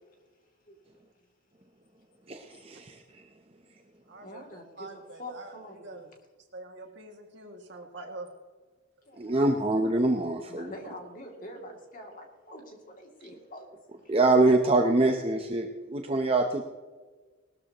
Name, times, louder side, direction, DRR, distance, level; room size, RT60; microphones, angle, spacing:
voice 1, 0.6-1.1 4.2-6.1 9.1-9.6 10.0-10.1 10.5-13.7 14.0-14.1, left 1 dB, 40° left, 1 dB, 2.7 m, -46 dB
voice 2, 2.3-3.3 9.2-10.7 14.1-16.6, right 2 dB, 30° right, 4 dB, 0.8 m, -25 dB
voice 3, 4.1-6.1 6.5-8.3, right 2 dB, 55° right, 2 dB, 2.2 m, -45 dB
19.5 x 13.0 x 3.0 m, 1.3 s
head